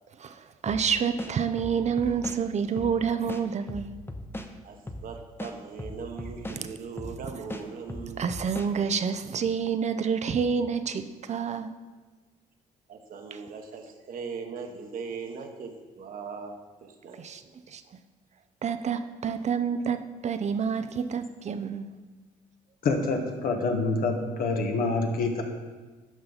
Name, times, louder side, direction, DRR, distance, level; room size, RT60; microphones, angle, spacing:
voice 1, 0.6-3.9 8.2-11.7 13.3-13.4 17.2-17.4 17.7-17.8 18.6-21.9, right 6 dB, 45° right, 10 dB, 0.5 m, -28 dB
sound 1, 0.7-0.8 1.2-2.4 2.8-2.9 3.3-4.5 4.9-5.0 5.4-6.6 7.0-7.2 7.5-8.7, left 1 dB, 15° left, 0.9 m, -37 dB
voice 2, 5.0-8.2 12.9-17.2 17.5-17.6, right 5 dB, 65° right, 4 dB, 1.2 m, -39 dB
voice 3, 22.8-25.4, left 3 dB, 65° left, 3 dB, 1.3 m, -26 dB
11.0 x 5.5 x 4.0 m, 1.3 s
supercardioid pair, 60°, 16 cm